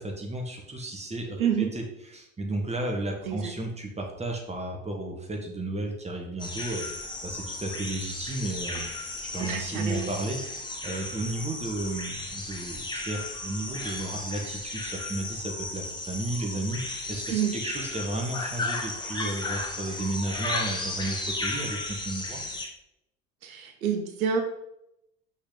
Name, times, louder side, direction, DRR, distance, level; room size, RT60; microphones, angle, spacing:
voice 1, 0.0-1.8 2.1-22.4, right 2 dB, 15° right, 1 dB, 1.5 m, -33 dB
voice 2, 1.4-1.7 3.3-3.5 9.4-10.1 17.3-17.5 23.4-24.4, right 7 dB, 70° right, 5 dB, 0.9 m, -28 dB
sound 1, 6.4-22.7, left 2 dB, 10° left, 1.2 m, -35 dB
6.1 x 6.0 x 3.9 m, 0.81 s
figure-of-eight pair, 65°, 44 cm